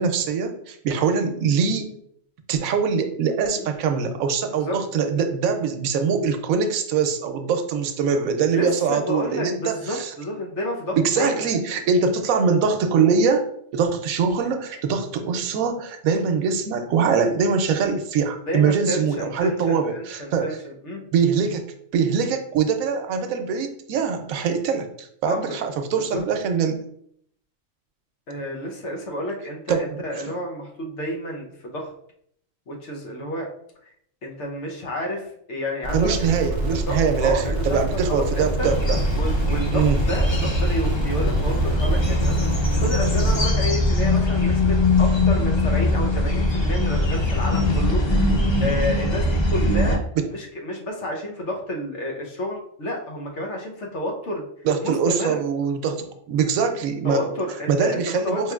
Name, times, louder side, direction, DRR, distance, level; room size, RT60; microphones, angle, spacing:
voice 1, 0.0-2.0 2.5-10.1 10.9-20.6 21.1-21.6 21.9-26.8 29.7-30.0 35.9-39.0 39.7-40.0 50.2-50.3 54.6-57.3 57.7-58.5, right 6 dB, 90° right, 7 dB, 1.0 m, -23 dB
voice 2, 8.5-11.4 18.5-21.0 25.3-25.6 26.0-26.2 28.3-31.9 32.7-33.5 34.2-37.8 38.1-38.7 39.1-48.3 48.6-50.0 50.3-54.4 54.8-55.4 57.0-58.5, equal, 65° left, 0 dB, 1.1 m, -30 dB
sound 1, 35.8-43.5, right 1 dB, 25° right, 0.6 m, -26 dB
sound 2, 38.6-50.0, left 2 dB, 45° left, 0.3 m, -21 dB
4.8 x 3.1 x 2.3 m, 0.67 s
omnidirectional pair, 1.4 m